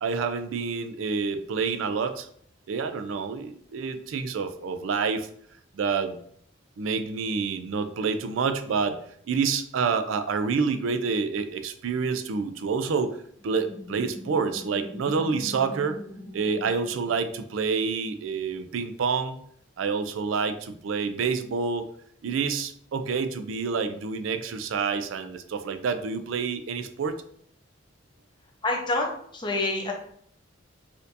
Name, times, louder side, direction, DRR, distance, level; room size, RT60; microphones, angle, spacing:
voice 1, 0.0-2.3 2.7-5.3 5.7-6.2 6.8-9.0 9.3-13.2 13.4-16.0 16.3-19.4 19.8-21.9 22.2-27.2, right 5 dB, 75° right, 9 dB, 0.4 m, -28 dB
sound 1, 13.4-17.9, left 1 dB, 85° left, 1.1 m, -42 dB
voice 2, 28.6-29.9, left 2 dB, 20° left, 1 dB, 0.6 m, -27 dB
4.2 x 2.6 x 2.6 m, 0.65 s
head